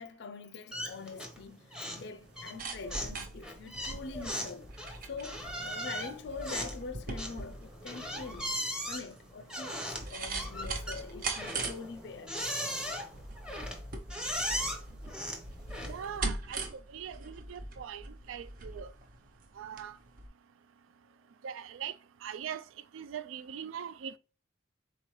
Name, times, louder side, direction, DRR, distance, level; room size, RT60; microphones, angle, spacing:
voice 1, 0.0-4.8 5.1-8.6 8.9-12.6, left 4 dB, 60° left, 0.4 m, -44 dB
sound 1, 0.7-1.4 1.7-2.1 2.4-16.2, equal, 5° right, 0.7 m, -38 dB
sound 2, 2.2-19.9 20.2-20.3, right 3 dB, 45° right, 0.6 m, -41 dB
voice 2, 15.8-18.9 19.6-20.0 21.4-22.6 22.9-24.2, right 8 dB, 85° right, 0.3 m, -41 dB
4.5 x 3.7 x 3.0 m
head